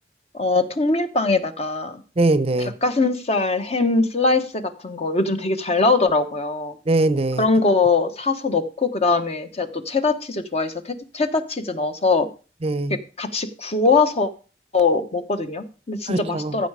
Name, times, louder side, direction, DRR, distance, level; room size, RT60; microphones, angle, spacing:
voice 1, 0.3-2.0 2.6-6.8 7.4-12.3 13.2-14.3 14.7-16.7, left 3 dB, 35° left, 1.2 m, -22 dB
voice 2, 2.2-2.7 6.9-7.5 12.6-13.0 16.1-16.5, right 2 dB, 35° right, 0.7 m, -21 dB
14.5 x 6.6 x 4.9 m
head